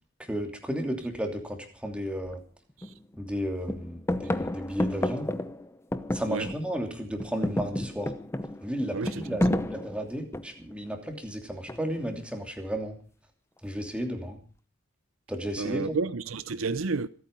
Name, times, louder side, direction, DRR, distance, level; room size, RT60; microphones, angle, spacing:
voice 1, 0.2-2.4 3.2-5.3 6.1-8.1 8.6-13.0 13.6-14.4 15.3-16.0, equal, 5° right, 3.0 m, -33 dB
sound 1, 2.2-2.3 2.8-3.4 3.6-6.8 7.1-10.7 11.7-12.2, left 1 dB, 15° left, 0.8 m, -31 dB
voice 2, 8.9-9.4 15.6-17.1, right 4 dB, 70° right, 0.7 m, -30 dB
26.5 x 8.9 x 5.3 m
head